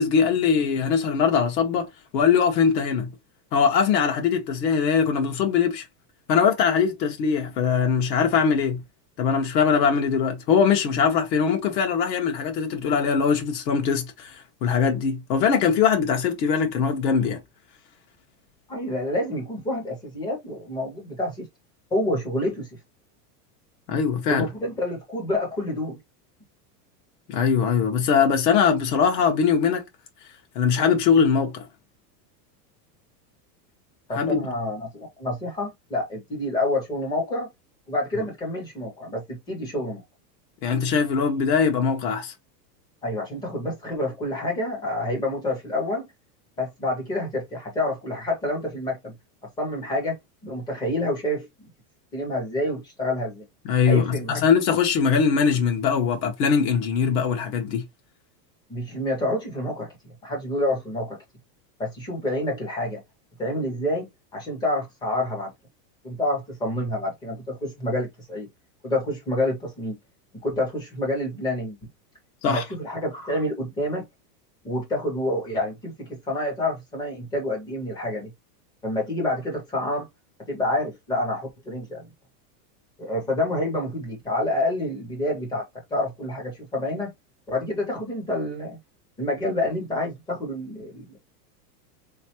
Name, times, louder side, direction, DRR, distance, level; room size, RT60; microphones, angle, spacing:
voice 1, 0.0-3.1 3.5-5.9 6.3-8.8 9.2-17.4 23.9-24.5 27.3-29.8 30.5-31.6 34.1-34.4 40.6-42.3 53.6-57.8 72.4-72.6, left 6 dB, 85° left, 1.3 m, -21 dB
voice 2, 18.7-21.5 21.9-22.7 24.3-26.0 34.1-37.5 37.9-40.0 43.0-46.1 46.6-49.2 49.6-51.7 52.1-53.4 53.8-54.4 58.7-59.9 60.2-61.2 61.8-63.0 63.4-65.5 66.0-68.5 68.8-70.0 70.3-71.9 72.5-74.1 74.6-78.3 78.8-80.1 80.5-82.1 83.0-85.7 85.9-87.1 87.5-88.8 89.2-91.2, left 1 dB, 10° left, 0.4 m, -28 dB
3.4 x 3.1 x 2.8 m
supercardioid pair, 165°, 48 cm